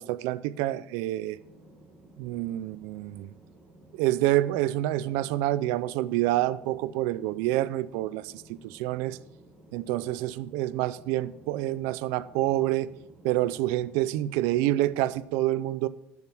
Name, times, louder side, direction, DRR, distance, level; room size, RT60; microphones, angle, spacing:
voice 1, 0.0-1.4 2.2-3.3 3.9-8.3 8.6-9.2 9.7-12.9 13.2-15.9, right 15 dB, 90° right, 0.5 m, -27 dB
sound 1, 1.3-15.2, right 1 dB, 30° right, 3.8 m, -55 dB
11.5 x 7.3 x 4.7 m
cardioid pair, 145°, 4 cm